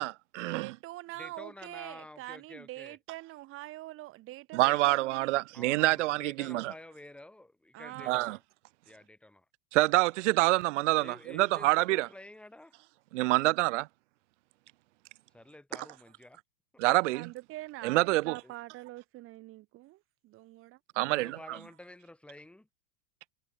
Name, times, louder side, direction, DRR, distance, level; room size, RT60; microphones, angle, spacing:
voice 1, 0.0-0.7 4.5-6.7 8.1-8.4 9.7-12.1 13.1-13.9 16.8-17.3 17.8-18.4 21.0-21.6, right 19 dB, 50° right, 1.3 m, -27 dB
voice 2, 0.5-5.4 7.7-8.4 17.1-20.8, right 17 dB, 30° right, 3.8 m, -45 dB
voice 3, 1.2-3.0 4.6-4.8 5.5-8.4 8.9-9.4 10.9-12.7 15.3-16.4 18.4-18.6 21.1-22.6, left 1 dB, ahead, 6.5 m, -50 dB
supercardioid pair, 170°, 46 cm